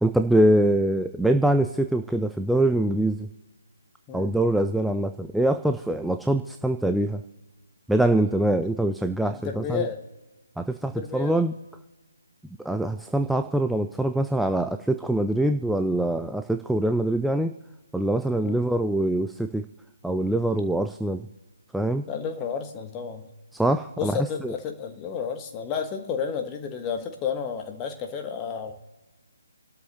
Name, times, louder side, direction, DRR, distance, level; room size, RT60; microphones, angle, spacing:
voice 1, 0.0-3.3 4.1-7.2 7.9-9.9 10.6-11.5 12.6-17.5 17.9-19.7 20.0-21.3 21.7-22.0 23.5-24.6, right 1 dB, ahead, 6 dB, 0.3 m, -24 dB
voice 2, 9.3-10.0 10.9-11.4 18.4-18.6 22.1-23.3 24.0-28.7, left 6 dB, 15° left, 5 dB, 1.3 m, -31 dB
28.5 x 12.5 x 2.8 m, 1.2 s
figure-of-eight pair, 140°, 0 cm